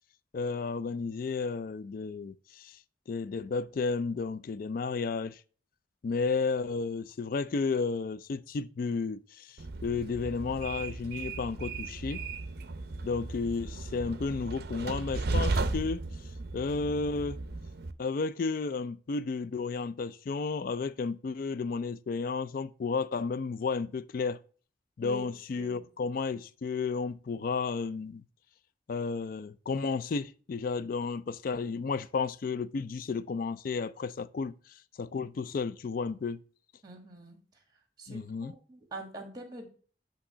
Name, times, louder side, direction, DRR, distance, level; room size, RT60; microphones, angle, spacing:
voice 1, 0.3-2.8 3.1-5.4 6.0-12.2 13.0-16.0 16.5-17.4 18.0-24.4 25.0-28.2 28.9-34.5 35.0-36.4 38.1-38.5, left 4 dB, 50° left, 0.3 m, -32 dB
Train, 9.6-17.9, right 3 dB, 55° right, 0.5 m, -35 dB
voice 2, 25.0-25.8 36.8-37.6 38.0-39.7, right 2 dB, 20° right, 1.4 m, -45 dB
8.6 x 2.9 x 5.4 m
head